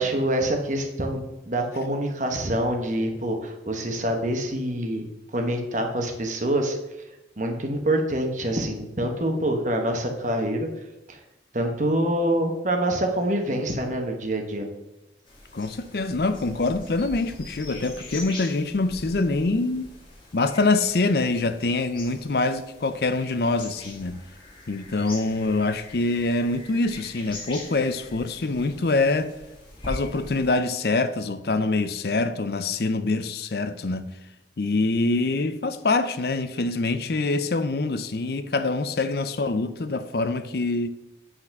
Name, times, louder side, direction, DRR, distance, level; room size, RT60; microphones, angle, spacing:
voice 1, 0.0-5.1 5.3-6.8 7.4-10.7 11.1-11.2 11.5-14.7, right 1 dB, 40° right, 1.2 m, -26 dB
sound 1, 15.3-30.5, left 2 dB, 30° left, 2.2 m, -42 dB
voice 2, 15.5-19.9 20.3-24.2 24.7-29.3 29.9-34.1 34.6-40.9, left 3 dB, 60° left, 0.5 m, -25 dB
8.0 x 4.2 x 5.9 m
head